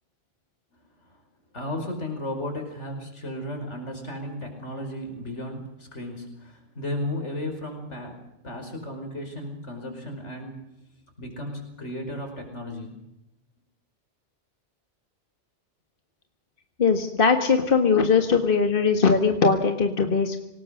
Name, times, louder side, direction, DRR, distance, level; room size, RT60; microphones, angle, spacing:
voice 1, 1.5-8.2 8.4-10.7 11.2-12.9, left 1 dB, 80° left, 4 dB, 5.4 m, -34 dB
voice 2, 16.8-20.4, left 5 dB, 50° left, 6 dB, 1.8 m, -20 dB
26.5 x 18.5 x 6.5 m, 0.90 s
omnidirectional pair, 1.2 m